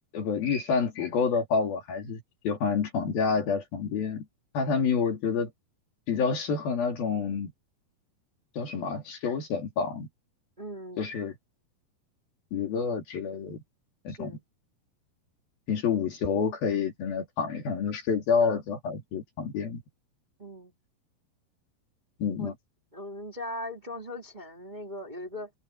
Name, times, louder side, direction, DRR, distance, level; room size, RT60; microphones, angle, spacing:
voice 1, 0.1-4.3 4.5-5.5 6.1-7.5 8.6-10.1 11.0-11.3 12.5-13.6 14.0-14.3 15.7-19.8 22.2-22.5, left 5 dB, 60° left, 4.5 m, -28 dB
voice 2, 10.6-11.1 14.1-14.4 20.4-20.7 22.4-22.5 22.9-25.5, left 1 dB, 15° right, 2.2 m, -39 dB
omnidirectional pair, 4.8 m